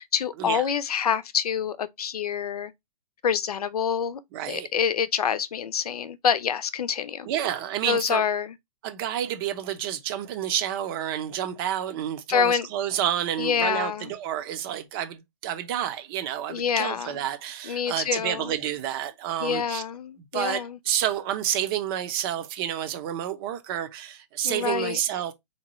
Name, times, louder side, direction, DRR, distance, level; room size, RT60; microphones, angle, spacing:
voice 1, 0.0-2.7 3.2-4.2 4.5-7.3 7.9-8.5 12.3-12.7 13.4-14.1 16.5-17.2 17.6-18.5 19.4-20.8 24.4-25.0, left 7 dB, 80° left, 0.6 m, -26 dB
voice 2, 4.3-4.7 7.3-8.2 8.8-19.8 20.3-25.3, right 11 dB, 40° right, 0.7 m, -29 dB
3.6 x 2.8 x 3.0 m
hypercardioid pair, 135°, 19 cm